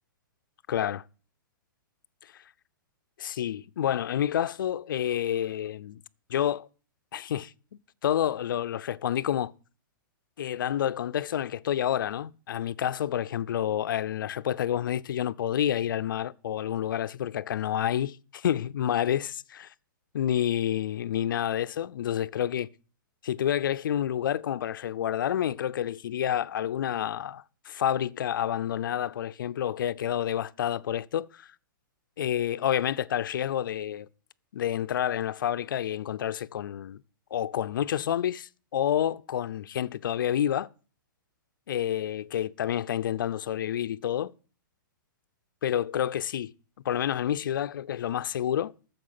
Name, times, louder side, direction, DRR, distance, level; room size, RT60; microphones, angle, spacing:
voice 1, 0.7-1.0 2.2-2.4 3.2-6.0 6.3-6.7 7.1-9.5 10.4-19.7 20.1-22.7 23.2-31.5 32.2-34.1 34.5-37.0 37.3-40.7 41.7-44.3 45.6-46.5 46.8-48.7, left 10 dB, 70° left, 0.6 m, -29 dB
13.5 x 7.3 x 5.8 m
hypercardioid pair, 155°, 11 cm